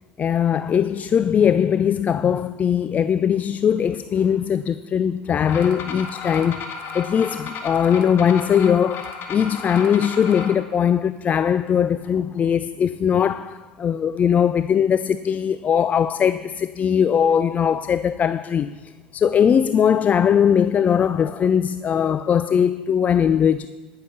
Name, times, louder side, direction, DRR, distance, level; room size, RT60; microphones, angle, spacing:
voice 1, 0.2-23.7, left 8 dB, 30° left, 0.4 m, -20 dB
sound 1, 5.4-10.5, left 5 dB, 50° left, 1.7 m, -34 dB
17.5 x 6.7 x 5.7 m
hypercardioid pair, 80°, 5 cm